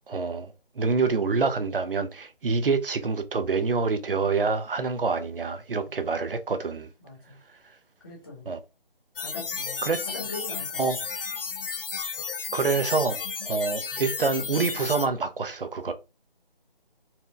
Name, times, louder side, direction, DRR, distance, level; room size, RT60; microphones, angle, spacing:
voice 1, 0.1-6.9 8.5-8.6 9.8-10.0 10.8-11.0 12.5-15.9, right 4 dB, 65° right, 0.7 m, -26 dB
voice 2, 5.8-6.2 7.0-7.4 8.0-8.5 9.2-11.0, left 2 dB, 25° left, 1.1 m, -42 dB
sound 1, 9.2-15.1, left 5 dB, 65° left, 0.6 m, -33 dB
4.3 x 2.1 x 3.4 m
figure-of-eight pair, 165°, 30 cm